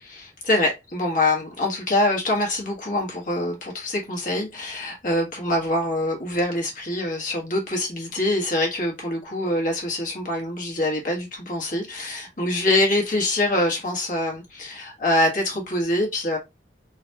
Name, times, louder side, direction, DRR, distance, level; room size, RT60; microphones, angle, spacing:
voice 1, 0.0-16.4, left 1 dB, 50° left, 1.3 m, -24 dB
3.8 x 2.3 x 2.8 m
head